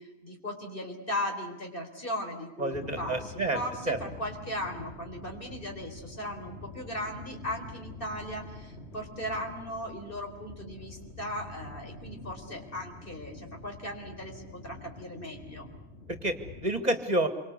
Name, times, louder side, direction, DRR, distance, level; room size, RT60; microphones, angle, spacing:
voice 1, 0.0-15.7, left 1 dB, 55° left, 3 dB, 4.4 m, -37 dB
voice 2, 2.6-4.0 16.1-17.3, right 1 dB, 40° right, 8 dB, 2.0 m, -29 dB
sound 1, 2.7-16.7, left 2 dB, 75° left, 3.0 m, -46 dB
27.0 x 24.5 x 8.2 m, 0.95 s
omnidirectional pair, 1.1 m